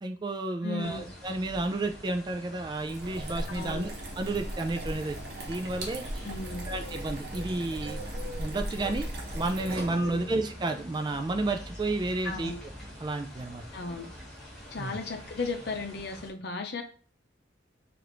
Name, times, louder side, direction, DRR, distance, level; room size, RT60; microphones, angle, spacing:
voice 1, 0.0-5.2 5.4-6.0 6.7-8.0 8.4-9.1 9.3-12.5 13.0-13.6 14.8-15.0, right 2 dB, 25° right, 6 dB, 0.3 m, -31 dB
voice 2, 0.6-1.1 3.5-3.8 6.2-6.7 10.0-10.2 12.2-12.6 13.7-14.1 14.7-16.8, left 3 dB, 60° left, 5 dB, 0.7 m, -35 dB
sound 1, 0.8-16.3, equal, 5° left, 1.3 m, -44 dB
sound 2, 2.7-10.3, right 1 dB, 55° right, 1.0 m, -38 dB
4.8 x 2.5 x 3.0 m, 0.40 s
head